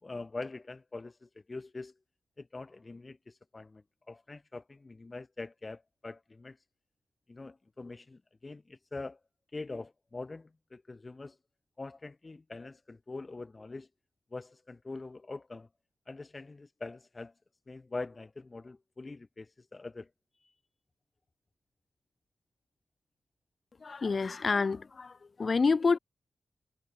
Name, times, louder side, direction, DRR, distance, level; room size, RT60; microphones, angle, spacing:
voice 1, 0.0-1.9 2.4-6.6 7.3-9.2 9.5-11.4 11.8-13.9 14.3-15.7 16.1-17.3 17.7-20.1 20.4-20.5, left 3 dB, 40° left, 3.7 m, -43 dB
voice 2, 23.8-25.1 25.4-26.0, left 4 dB, 55° left, 0.5 m, -27 dB
cardioid pair, 50°, 0 cm